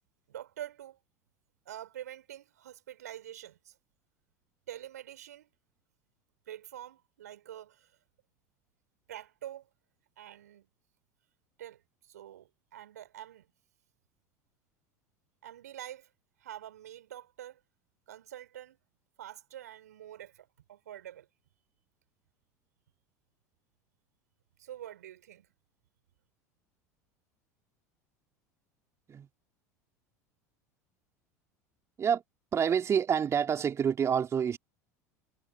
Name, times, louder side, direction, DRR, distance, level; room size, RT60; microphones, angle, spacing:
voice 1, 0.3-1.0 1.7-3.8 4.7-5.5 6.5-7.9 9.1-9.7 10.2-10.7 11.6-13.5 15.4-16.1 16.4-17.6 18.1-18.8 19.2-21.3 24.6-25.5, right 12 dB, 75° right, 5.6 m, -46 dB
voice 2, 32.5-34.6, right 7 dB, 30° right, 3.1 m, -27 dB
hypercardioid pair, 75°, 9 cm